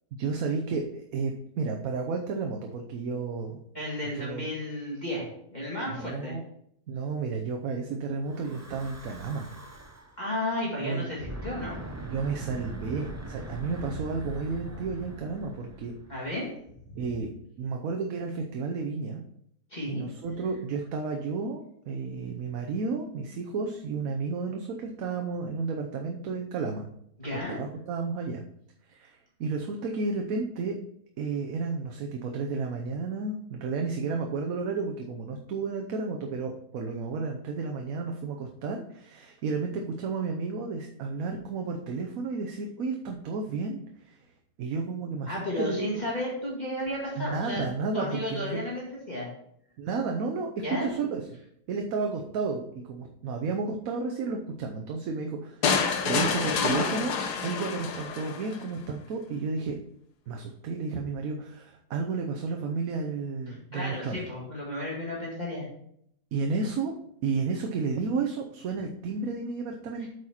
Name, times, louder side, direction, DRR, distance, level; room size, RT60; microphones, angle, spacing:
voice 1, 0.2-3.6 4.1-4.5 5.9-6.4 6.9-9.5 10.8-11.1 12.0-15.9 17.0-17.3 17.6-19.2 19.9-26.9 27.3-28.4 28.9-30.7 31.2-44.2 44.6-46.0 47.2-48.6 49.8-51.4 51.7-57.1 57.4-59.8 60.3-64.2 66.3-66.9 67.2-70.1, right 4 dB, 65° right, 2 dB, 1.1 m, -32 dB
voice 2, 3.7-6.3 10.2-11.8 16.1-16.5 16.9-17.2 19.7-20.1 27.2-27.6 45.3-47.6 47.9-49.3 50.6-50.9 63.5-65.7, left 1 dB, 25° left, -6 dB, 2.1 m, -33 dB
Breathing / Wind, 8.2-10.2 11.1-16.5, right 1 dB, 15° right, 0.5 m, -41 dB
sound 1, 55.6-58.6, left 5 dB, 80° left, 1.5 m, -28 dB
8.2 x 4.9 x 4.3 m, 0.71 s
omnidirectional pair, 1.7 m